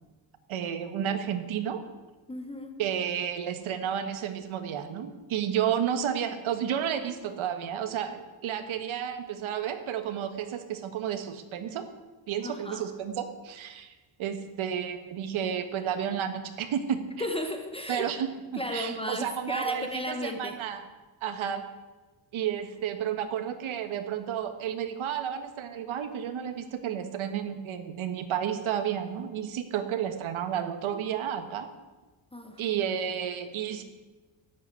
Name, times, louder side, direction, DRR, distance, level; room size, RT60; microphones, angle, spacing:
voice 1, 0.5-1.8 2.8-11.9 12.3-13.9 14.2-17.0 17.9-20.8 21.2-21.7 22.3-31.7 32.6-33.8, right 9 dB, 70° right, 8 dB, 1.7 m, -31 dB
voice 2, 2.3-2.8 12.4-12.8 17.2-18.1 18.5-20.6 32.3-32.6, left 1 dB, 10° left, 5 dB, 1.0 m, -34 dB
12.0 x 8.0 x 9.5 m, 1.2 s
cardioid pair, 140°, 49 cm